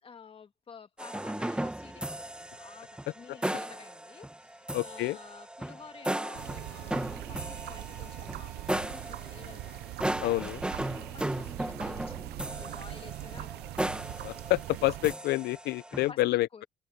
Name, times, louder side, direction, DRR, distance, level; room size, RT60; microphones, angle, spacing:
voice 1, 0.0-10.2 10.9-13.8 16.1-16.7, left 6 dB, 35° left, 2.3 m, -51 dB
sound 1, 1.0-16.1, right 1 dB, 5° right, 1.0 m, -36 dB
voice 2, 4.7-5.2 10.2-10.6 14.2-16.6, left 18 dB, 75° left, 0.5 m, -28 dB
sound 2, 6.3-15.2, right 18 dB, 75° right, 0.5 m, -41 dB
cardioid pair, 110°, 17 cm